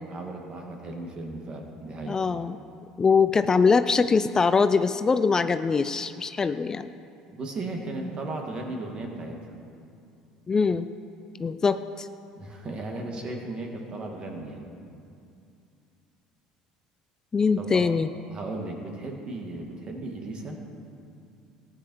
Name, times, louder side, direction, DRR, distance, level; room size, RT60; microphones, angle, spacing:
voice 1, 0.1-2.2 7.3-9.5 12.4-14.7 17.6-17.9 18.3-20.6, right 2 dB, 40° right, 1 dB, 2.1 m, -36 dB
voice 2, 2.1-2.6 3.0-6.9 10.5-10.9 11.4-12.1 17.3-18.1, left 5 dB, 25° left, 11 dB, 0.4 m, -22 dB
15.0 x 9.8 x 4.7 m, 2.5 s
supercardioid pair, 90°, 2 cm